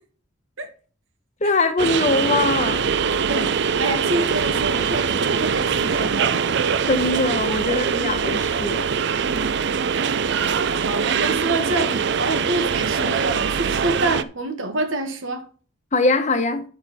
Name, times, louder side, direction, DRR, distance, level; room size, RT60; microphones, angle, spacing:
voice 1, 1.4-2.8 6.9-8.9 15.9-16.6, left 3 dB, 35° left, 1.0 m, -22 dB
sound 1, 1.8-14.2, right 6 dB, 55° right, 0.4 m, -22 dB
voice 2, 3.2-6.8 9.1-9.5 9.9-10.0 10.4-15.4, right 2 dB, 80° right, 1.6 m, -27 dB
8.7 x 6.8 x 4.2 m
head